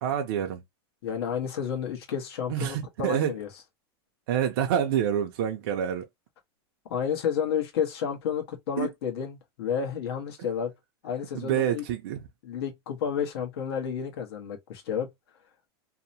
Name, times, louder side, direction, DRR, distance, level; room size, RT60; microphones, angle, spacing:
voice 1, 0.0-0.6 2.5-3.4 4.3-6.0 8.8-8.9 10.4-10.5 11.3-12.2, right 9 dB, 55° right, 0.5 m, -27 dB
voice 2, 1.0-3.5 6.9-10.7 11.0-11.8 12.4-15.1, left 7 dB, 70° left, 1.0 m, -31 dB
2.8 x 2.0 x 2.6 m
supercardioid pair, 165°, 14 cm